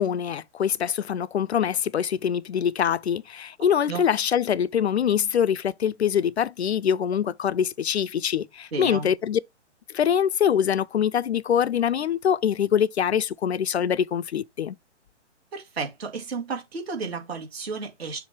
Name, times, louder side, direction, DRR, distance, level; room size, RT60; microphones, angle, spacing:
voice 1, 0.0-9.4 9.9-14.8, left 8 dB, 65° left, 0.5 m, -24 dB
voice 2, 8.7-9.1 15.5-18.2, right 4 dB, 55° right, 2.1 m, -32 dB
6.6 x 2.6 x 5.5 m
figure-of-eight pair, 140°, 36 cm